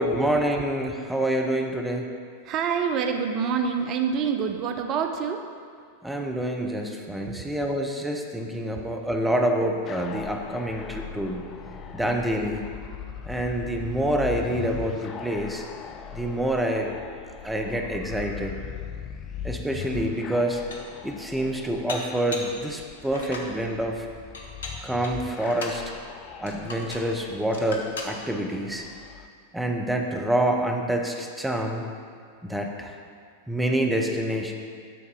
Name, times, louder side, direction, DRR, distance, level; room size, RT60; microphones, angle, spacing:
voice 1, 0.0-2.1 6.0-11.5 11.9-12.7 13.2-15.6 16.1-16.9 17.4-18.6 19.4-20.6 21.0-24.1 24.8-25.8 26.4-28.9 29.5-31.9 32.4-33.0 33.5-34.5, right 1 dB, 5° right, 2 dB, 0.7 m, -27 dB
voice 2, 2.4-5.5 7.3-7.4 8.8-8.9, right 6 dB, 35° right, 5 dB, 0.5 m, -27 dB
sound 1, 9.9-29.3, left 8 dB, 30° left, 0.4 m, -40 dB
Dishes pots and pans, 19.8-19.9 20.4-21.0 21.9-22.6 23.0-23.5 24.3-25.8 26.5-27.1 27.5-28.2, left 2 dB, 70° left, 0.9 m, -38 dB
9.2 x 4.0 x 5.4 m, 2.2 s
figure-of-eight pair, 90°, 0 cm